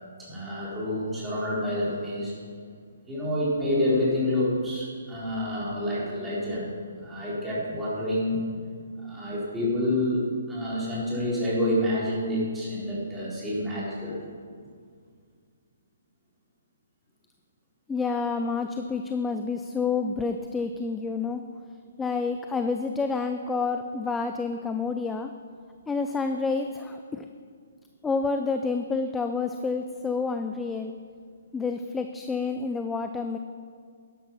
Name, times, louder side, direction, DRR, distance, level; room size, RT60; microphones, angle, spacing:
voice 1, 0.2-2.3 3.1-6.7 7.0-8.4 9.0-14.2, left 1 dB, 10° right, -8 dB, 4.2 m, -28 dB
voice 2, 17.9-21.4 22.0-25.3 25.9-27.3 28.0-30.9 31.5-33.4, left 4 dB, 10° left, 6 dB, 0.5 m, -29 dB
12.0 x 11.0 x 5.7 m, 2.1 s
hypercardioid pair, 155°, 0 cm